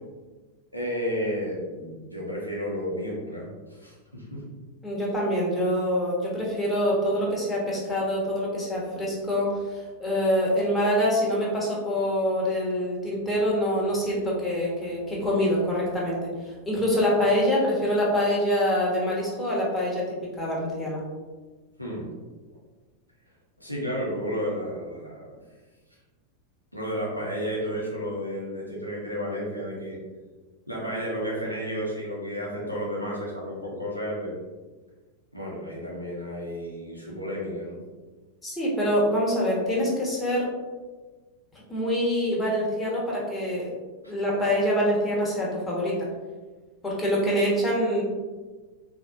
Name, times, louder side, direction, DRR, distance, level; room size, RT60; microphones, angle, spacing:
voice 1, 0.7-3.5 3.8-4.4 21.8-22.1 23.6-25.3 26.7-30.0 30.7-34.4 35.3-37.8 44.0-44.1, equal, 90° right, -4 dB, 0.9 m, -32 dB
voice 2, 4.8-16.3 16.7-21.0 38.4-40.5 41.7-43.7 44.1-45.9 46.8-48.0, equal, 10° left, -5 dB, 1.1 m, -25 dB
4.0 x 2.7 x 2.5 m, 1.3 s
figure-of-eight pair, 90°, 0 cm